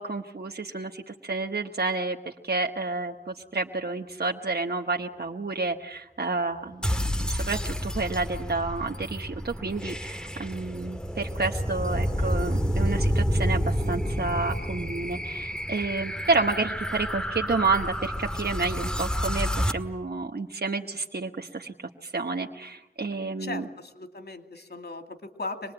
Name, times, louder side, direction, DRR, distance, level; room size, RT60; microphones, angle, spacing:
voice 1, 0.0-2.2 2.4-6.9 7.2-23.6, right 3 dB, 75° right, 2 dB, 1.2 m, -30 dB
sound 1, 6.8-19.7, equal, 5° left, 1.8 m, -29 dB
voice 2, 23.4-25.7, left 3 dB, 85° left, 6 dB, 2.4 m, -38 dB
26.0 x 21.0 x 9.0 m, 0.90 s
wide cardioid pair, 40°, 17 cm